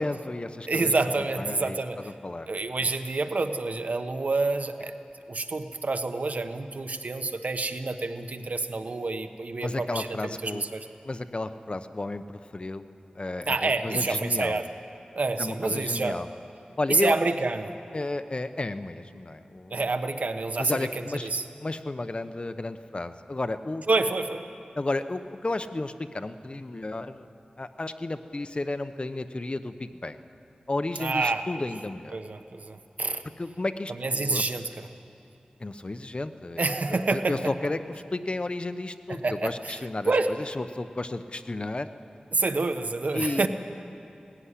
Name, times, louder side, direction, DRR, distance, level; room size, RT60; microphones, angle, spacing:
voice 1, 0.0-0.9 1.4-2.5 2.8-2.9 9.6-10.6 11.0-12.9 13.1-14.6 15.4-16.3 16.8-17.2 17.9-19.8 20.6-21.3 21.6-23.8 24.7-27.3 27.6-30.2 30.7-32.2 33.4-34.4 35.6-41.9 43.1-43.5, left 2 dB, 40° left, 10 dB, 0.9 m, -32 dB
voice 2, 0.7-2.1 2.5-4.9 5.3-10.9 13.5-14.7 15.1-16.2 16.9-17.7 19.7-20.9 21.2-21.4 23.9-24.5 31.0-31.4 32.1-33.2 33.9-34.9 36.6-37.4 39.1-39.8 40.0-40.3 42.3-43.5, right 3 dB, 65° right, 8 dB, 1.1 m, -28 dB
18.0 x 16.0 x 9.9 m, 2.7 s
wide cardioid pair, 55°, 3 cm